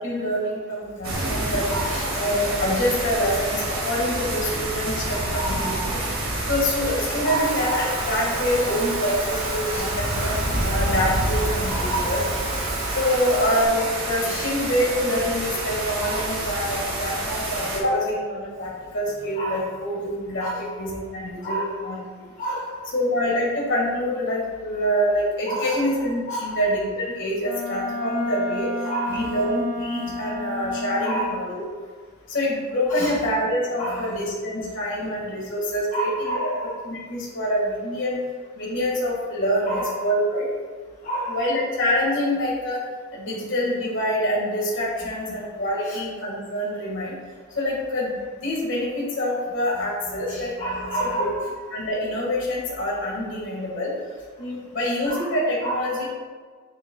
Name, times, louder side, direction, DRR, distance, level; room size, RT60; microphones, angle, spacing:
voice 1, 0.0-1.7 2.1-6.0 6.5-10.3 10.6-12.2 12.9-22.3 22.9-28.7 29.1-31.6 32.3-36.5 36.8-38.2 38.6-40.5 41.3-42.8 43.1-47.1 47.6-50.5 51.0-51.3 51.7-53.9 54.4-56.1, equal, 60° left, -4 dB, 1.7 m, -26 dB
sound 1, 1.0-17.8, right 1 dB, 80° right, 1.7 m, -28 dB
voice 2, 1.7-2.2 5.1-6.2 7.2-7.9 9.7-9.9 11.7-12.3 14.2-14.5 16.0-16.2 18.6-18.7 19.4-19.7 20.4-20.6 21.4-21.9 22.4-22.9 25.5-26.0 26.3-26.6 28.9-29.3 30.1-30.2 31.0-31.3 31.5-31.6 32.9-33.3 33.8-34.3 34.6-34.7 35.9-36.8 39.7-39.9 41.0-41.4 45.3-45.4 45.9-46.0 49.8-49.9 50.3-51.5 55.1-55.3 55.6-56.1, right 1 dB, 35° left, -6 dB, 0.9 m, -30 dB
Motor vehicle (road) / Engine, 7.4-13.6, right 3 dB, 35° right, 0.5 m, -34 dB
Wind instrument woodwind instrument, 27.4-31.5, left 1 dB, 5° right, 1.9 m, -31 dB
7.2 x 6.7 x 2.3 m, 1.5 s
head